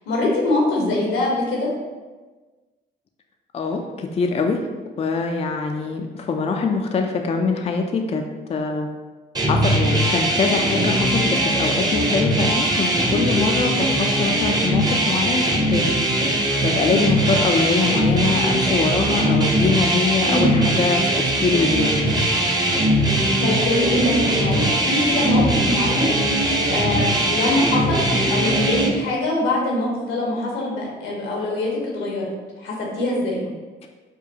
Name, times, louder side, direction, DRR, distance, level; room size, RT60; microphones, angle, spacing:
voice 1, 0.1-1.7 20.2-20.4 23.4-26.2 26.6-32.3 32.6-33.4, left 2 dB, 85° left, -3 dB, 1.1 m, -23 dB
voice 2, 3.5-4.7 5.0-8.2 8.5-8.9 9.5-15.9 16.6-21.1 21.4-22.2, left 4 dB, 30° left, 3 dB, 0.4 m, -23 dB
sound 1, 9.3-28.9, right 1 dB, 20° right, 0.8 m, -20 dB
4.8 x 2.2 x 2.8 m, 1.3 s
supercardioid pair, 65°, 20 cm